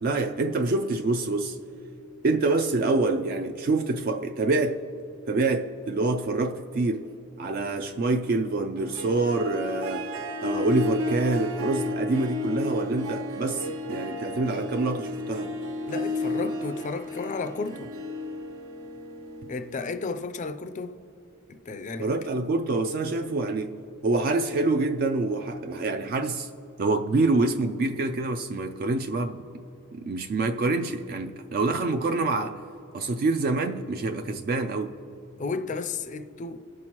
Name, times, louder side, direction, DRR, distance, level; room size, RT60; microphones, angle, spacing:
voice 1, 0.0-1.6 2.2-4.8 5.3-10.1 10.4-15.6 22.0-26.5 26.8-29.4 29.9-32.6 32.9-35.0, right 3 dB, 45° right, 0.3 m, -26 dB
Harp, 8.8-20.0, left 2 dB, 65° right, 0.7 m, -33 dB
voice 2, 15.9-17.9 19.5-21.0 21.5-22.1 35.4-36.6, left 4 dB, 35° left, 0.4 m, -33 dB
18.0 x 6.1 x 2.9 m
head